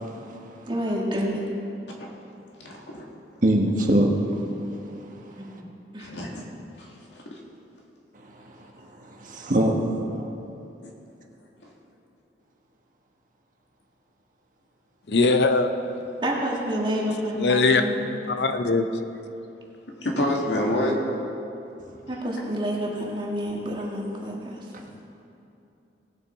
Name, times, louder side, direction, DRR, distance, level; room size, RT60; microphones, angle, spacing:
voice 1, 0.0-0.4 3.4-4.1 5.5-5.6 9.0-10.2, right 1 dB, 50° right, 0 dB, 1.4 m, -23 dB
voice 2, 0.7-1.4 5.5-5.6 5.9-6.2 16.2-18.0 22.1-24.6, equal, 30° right, -2 dB, 1.8 m, -28 dB
voice 3, 2.6-3.0 6.0-6.4 10.8-10.9 20.0-20.9, left 1 dB, 85° left, -1 dB, 2.1 m, -27 dB
voice 4, 15.1-15.7 17.4-17.8 18.3-18.9, left 3 dB, 70° left, 7 dB, 0.6 m, -20 dB
19.0 x 7.2 x 4.5 m, 2.8 s
head